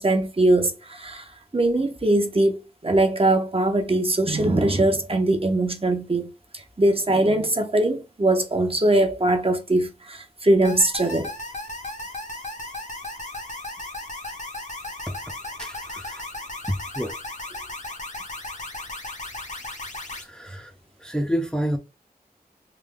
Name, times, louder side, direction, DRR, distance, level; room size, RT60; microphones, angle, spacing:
voice 1, 0.0-11.3, right 2 dB, 35° right, 0.8 m, -21 dB
sound 1, 10.6-20.2, left 2 dB, 45° left, 0.9 m, -35 dB
voice 2, 15.6-16.2 16.9-17.1 20.2-20.7 21.0-21.8, equal, 5° left, 0.7 m, -28 dB
3.4 x 2.3 x 3.7 m
wide cardioid pair, 55°, 16 cm